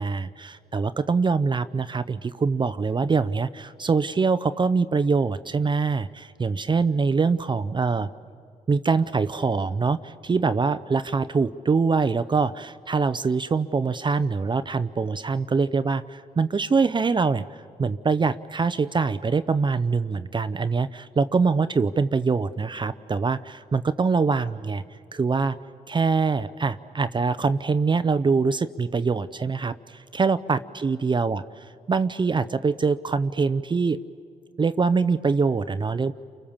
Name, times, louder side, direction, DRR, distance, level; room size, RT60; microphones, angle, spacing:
voice 1, 0.0-8.1 8.7-17.4 17.8-24.8 25.1-25.6 25.9-34.0 34.6-36.1, right 4 dB, 35° right, 12 dB, 0.7 m, -24 dB
30.0 x 24.0 x 7.3 m, 2.2 s
supercardioid pair, 65°, 15 cm